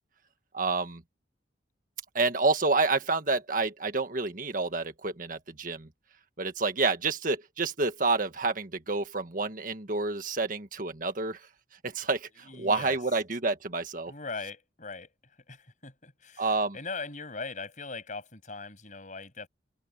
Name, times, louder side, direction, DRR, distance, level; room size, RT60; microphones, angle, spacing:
voice 1, 0.5-1.0 2.1-5.9 6.4-11.5 11.8-14.1 16.4-16.8, right 3 dB, 50° right, 1.6 m, -29 dB
voice 2, 12.5-13.0 14.1-19.5, left 4 dB, 45° left, 7.1 m, -40 dB
open air
head